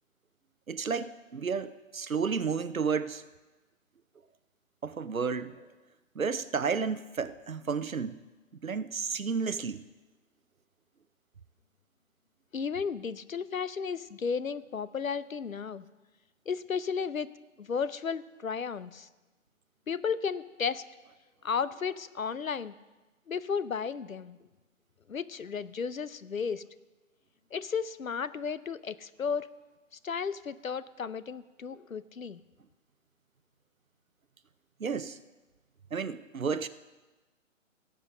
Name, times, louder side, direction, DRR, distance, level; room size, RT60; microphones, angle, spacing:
voice 1, 0.7-3.3 4.8-5.6 6.1-8.1 8.6-9.8 34.8-35.2 35.9-36.7, right 5 dB, 90° right, 13 dB, 0.8 m, -32 dB
voice 2, 12.5-15.9 16.5-17.3 17.6-19.1 19.9-20.8 21.4-22.7 23.3-24.4 25.1-26.6 27.5-29.5 30.0-32.4, left 6 dB, 85° left, 17 dB, 0.7 m, -33 dB
17.5 x 7.6 x 5.1 m, 1.2 s
figure-of-eight pair, 140°, 40 cm